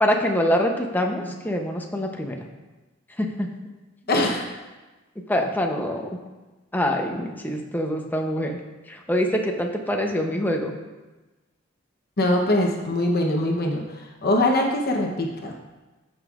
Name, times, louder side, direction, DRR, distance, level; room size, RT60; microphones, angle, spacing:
voice 1, 0.0-2.4 3.2-3.5 5.3-6.1 6.7-8.6 8.9-10.7, equal, 10° left, 2 dB, 0.7 m, -24 dB
voice 2, 4.1-4.5 12.2-15.5, left 1 dB, 50° left, 1 dB, 0.9 m, -23 dB
14.5 x 5.3 x 2.4 m, 1.2 s
head